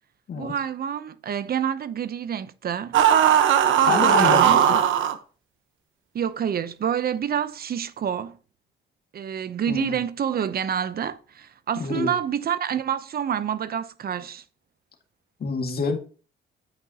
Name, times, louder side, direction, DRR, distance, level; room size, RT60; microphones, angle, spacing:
voice 1, 0.3-3.0 3.8-4.6 6.1-8.4 9.1-14.4, right 8 dB, 50° right, 0.8 m, -28 dB
sound 1, 2.9-5.1, right 9 dB, 80° right, 1.1 m, -18 dB
voice 2, 3.8-4.8 9.7-10.0 11.8-12.2 15.4-16.0, left 5 dB, 50° left, 2.1 m, -27 dB
9.7 x 8.7 x 2.9 m
cardioid pair, 90°, 20 cm